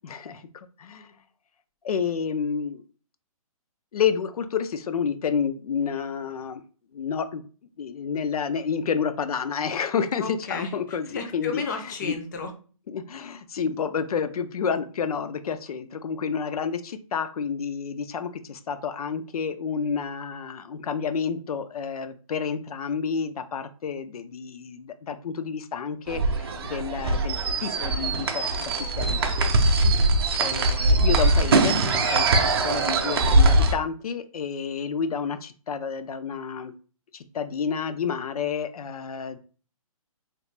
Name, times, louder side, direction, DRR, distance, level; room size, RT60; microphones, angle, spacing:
voice 1, 0.0-1.2 1.8-2.8 3.9-6.6 6.9-7.4 7.8-11.6 12.0-12.2 12.9-29.3 30.4-36.7 37.1-39.4, left 6 dB, 90° left, 10 dB, 0.4 m, -30 dB
voice 2, 10.2-12.5 29.8-30.1, left 4 dB, 30° left, 5 dB, 0.5 m, -33 dB
sound 1, 26.1-33.7, right 2 dB, 45° right, 0.5 m, -21 dB
3.1 x 2.4 x 3.2 m, 0.39 s
hypercardioid pair, 165°, 18 cm